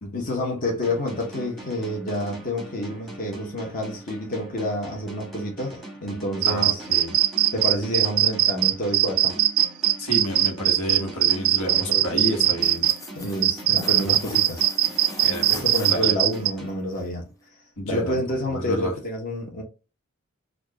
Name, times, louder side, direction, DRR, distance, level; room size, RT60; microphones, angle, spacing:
voice 1, 0.1-6.8 7.5-9.3 11.6-12.6 13.1-15.0 15.5-17.2 17.8-19.6, left 1 dB, 40° left, 1.0 m, -29 dB
sound 1, 0.8-17.4, right 2 dB, ahead, 1.1 m, -41 dB
voice 2, 6.4-7.1 10.0-12.9 13.7-14.1 15.2-16.1 17.8-18.9, equal, 80° left, 1.3 m, -31 dB
sound 2, 6.4-12.9 13.4-16.5, right 12 dB, 85° right, 0.4 m, -20 dB
sound 3, 12.4-16.4 16.9-17.0, left 3 dB, 15° left, 0.5 m, -41 dB
4.4 x 2.4 x 2.9 m
head